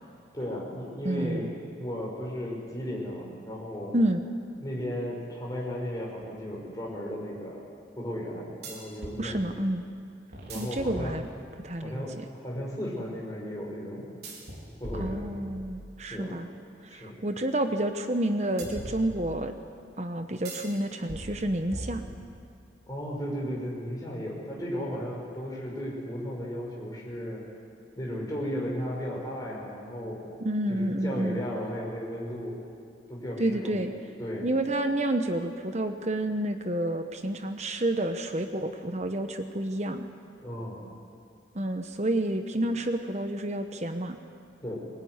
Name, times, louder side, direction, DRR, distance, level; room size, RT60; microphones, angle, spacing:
voice 1, 0.3-1.5 1.8-3.9 4.6-7.7 8.0-9.5 10.5-11.2 11.8-14.2 14.8-15.3 16.1-16.4 16.9-17.2 22.9-27.4 28.0-30.2 30.7-32.6 33.1-33.8 34.2-34.5 40.4-40.8 44.6-44.7, equal, 20° left, -4 dB, 5.9 m, -35 dB
voice 2, 1.0-1.5 3.9-4.2 9.2-9.8 10.5-11.2 11.6-12.0 15.0-16.5 16.8-19.5 20.0-22.0 30.4-31.4 33.4-33.9 34.4-40.1 41.5-44.2, right 1 dB, 40° right, 7 dB, 1.1 m, -29 dB
sound 1, 6.2-6.3 8.6-9.2 10.3-11.6 14.2-15.9 18.6-19.6 20.5-20.8 21.1-22.4, right 1 dB, 65° right, 4.1 m, -41 dB
22.0 x 20.5 x 9.6 m, 2.3 s
head